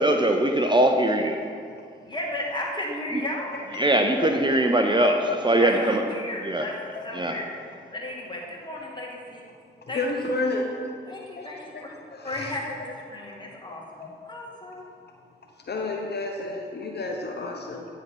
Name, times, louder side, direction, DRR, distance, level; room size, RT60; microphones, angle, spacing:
voice 1, 0.0-1.4 3.8-6.0 6.4-6.7 7.1-7.3, right 1 dB, 20° right, 4 dB, 0.7 m, -21 dB
voice 2, 2.1-3.6 5.6-6.8 7.0-7.5 7.9-9.4 9.9-10.0 11.1-12.0 12.2-14.8, left 1 dB, 20° left, -3 dB, 2.5 m, -34 dB
voice 3, 3.5-5.4 6.9-7.0 9.8-10.8 11.4-11.8 12.1-12.5 13.4-13.5 14.0-14.1 15.7-17.9, left 2 dB, 50° left, 1 dB, 1.0 m, -32 dB
9.4 x 4.0 x 7.2 m, 2.2 s
supercardioid pair, 45°, 21 cm